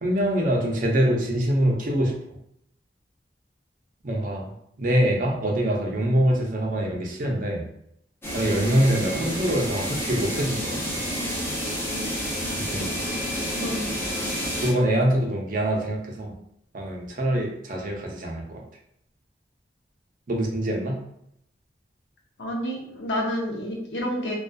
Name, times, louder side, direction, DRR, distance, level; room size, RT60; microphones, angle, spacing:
voice 1, 0.0-2.1 4.0-4.5 4.8-7.6 8.3-11.0 12.6-13.0 14.6-16.3 16.7-18.6 20.3-21.0, right 1 dB, 50° right, 0 dB, 0.5 m, -24 dB
sound 1, 8.2-14.7, equal, 15° left, 0.6 m, -29 dB
voice 2, 13.6-14.1 22.4-24.3, equal, 85° left, -1 dB, 0.6 m, -29 dB
2.5 x 2.3 x 2.2 m, 0.74 s
head